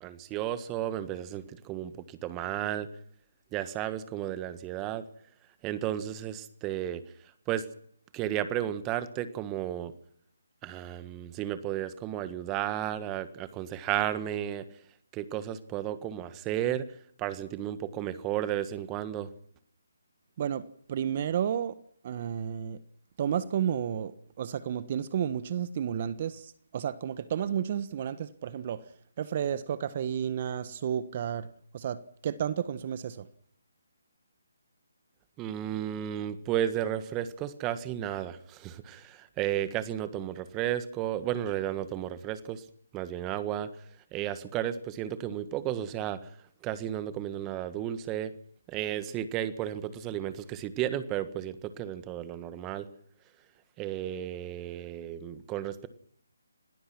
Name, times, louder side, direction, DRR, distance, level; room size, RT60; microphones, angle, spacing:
voice 1, 0.0-2.9 3.5-5.1 5.6-7.0 7.5-7.6 8.1-9.9 10.6-14.7 15.1-16.9 17.2-19.3 35.4-42.6 42.9-43.7 44.1-46.3 46.6-48.3 48.7-52.9 53.8-55.9, right 11 dB, 20° right, 12 dB, 1.6 m, -33 dB
voice 2, 20.9-21.7 22.0-22.8 23.2-24.1 24.4-28.8 29.2-31.5 31.7-33.3, right 9 dB, 40° right, 14 dB, 1.2 m, -31 dB
27.0 x 18.5 x 6.1 m, 0.66 s
figure-of-eight pair, 150°, 0 cm